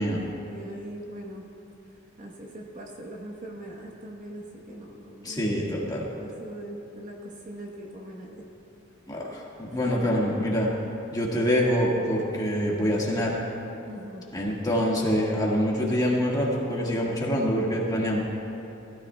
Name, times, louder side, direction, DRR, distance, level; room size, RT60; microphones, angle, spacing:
voice 1, 0.1-1.5 2.2-5.5 5.9-8.5 9.8-10.2 13.9-14.2, right 1 dB, 40° right, -1 dB, 1.3 m, -41 dB
voice 2, 5.2-6.1 9.1-10.7 11.1-13.4 14.3-18.2, equal, 20° left, -4 dB, 1.8 m, -25 dB
19.5 x 13.5 x 2.3 m, 2.9 s
head